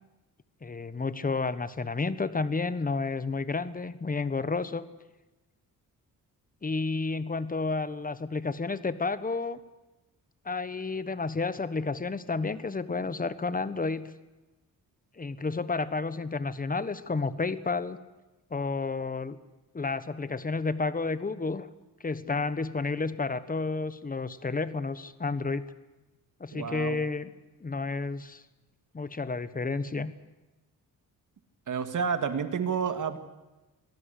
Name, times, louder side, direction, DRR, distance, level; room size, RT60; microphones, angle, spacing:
voice 1, 0.6-4.8 6.6-9.6 10.4-14.1 15.2-18.0 18.5-19.4 19.7-21.7 22.0-25.6 26.4-27.3 27.6-28.4 28.9-30.1, left 4 dB, 25° left, 14 dB, 1.2 m, -31 dB
voice 2, 26.5-27.0 31.7-33.2, right 6 dB, 60° right, 9 dB, 2.2 m, -30 dB
25.5 x 17.5 x 8.3 m, 1.1 s
cardioid pair, 105°, 35 cm